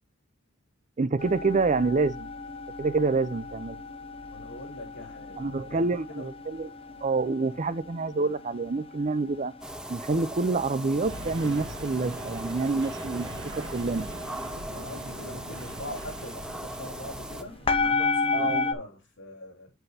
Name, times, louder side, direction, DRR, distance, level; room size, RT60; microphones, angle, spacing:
voice 1, 1.0-2.3 2.8-3.8 5.4-6.7 7.0-9.5 9.9-14.1 18.3-18.6, right 3 dB, 35° right, 0.6 m, -27 dB
sound 1, 1.2-18.7, left 4 dB, 30° left, 0.9 m, -34 dB
voice 2, 4.3-6.3 14.7-19.7, left 1 dB, 65° left, 3.9 m, -42 dB
sound 2, 9.6-17.4, right 1 dB, 5° right, 0.7 m, -39 dB
sound 3, 11.0-17.9, right 1 dB, 75° right, 2.0 m, -42 dB
8.0 x 7.9 x 2.8 m
head